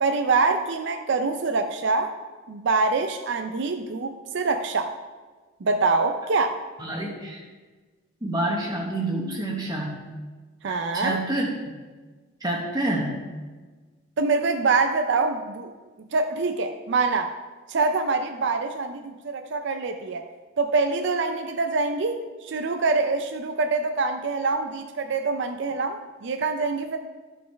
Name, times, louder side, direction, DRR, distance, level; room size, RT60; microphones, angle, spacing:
voice 1, 0.0-2.1 2.5-5.0 5.6-6.6 10.6-11.2 14.2-15.7 16.1-17.3 17.7-20.2 20.6-27.0, right 3 dB, 65° right, 6 dB, 0.5 m, -25 dB
voice 2, 6.8-7.4 8.2-10.0 10.6-11.5 12.4-13.2, right 1 dB, 20° right, -2 dB, 1.1 m, -28 dB
13.5 x 5.3 x 3.4 m, 1.3 s
head